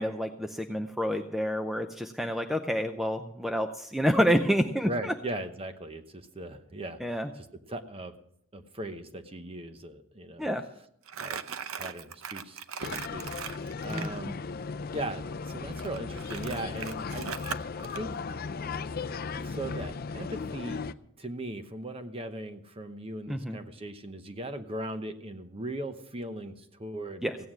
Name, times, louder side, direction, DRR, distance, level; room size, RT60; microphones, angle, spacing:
voice 1, 0.0-5.1 7.0-7.3 10.4-10.6 13.9-14.1 23.3-23.6 27.2-27.4, equal, ahead, 6 dB, 0.5 m, -28 dB
voice 2, 4.8-8.2 8.5-10.5 11.2-11.4 11.7-14.4 14.9-17.3 17.9-18.1 19.4-20.9 21.2-27.3, right 1 dB, 25° right, 8 dB, 0.9 m, -39 dB
Crumpling crinkling, 11.1-14.1 15.8-18.0, right 7 dB, 75° right, 0.7 m, -38 dB
sound 1, 12.8-20.9, left 4 dB, 45° left, 0.5 m, -36 dB
16.0 x 9.4 x 6.2 m, 0.71 s
head